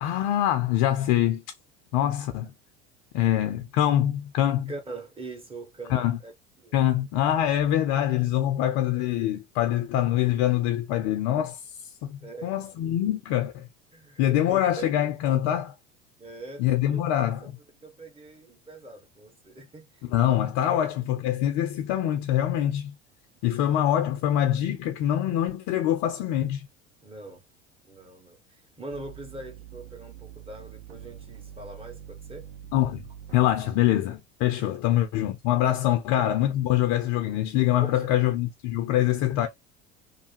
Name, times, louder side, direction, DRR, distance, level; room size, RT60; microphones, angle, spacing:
voice 1, 0.0-1.4 1.9-2.5 3.1-4.7 5.9-6.2 6.7-11.6 12.0-13.7 14.2-15.7 16.6-17.5 20.0-22.9 23.4-26.7 32.7-33.0 33.3-39.5, left 12 dB, 55° left, 0.6 m, -24 dB
voice 2, 4.7-6.3 6.6-6.8 12.2-12.5 13.9-15.0 16.2-17.0 17.8-20.0 23.6-23.8 27.0-27.4 27.9-28.4 28.8-32.4 34.6-34.8 36.2-36.3 37.8-38.0, right 2 dB, 15° right, 1.3 m, -42 dB
sound 1, 28.9-33.9, right 10 dB, 70° right, 0.7 m, -45 dB
3.2 x 2.2 x 2.8 m
hypercardioid pair, 70°, 36 cm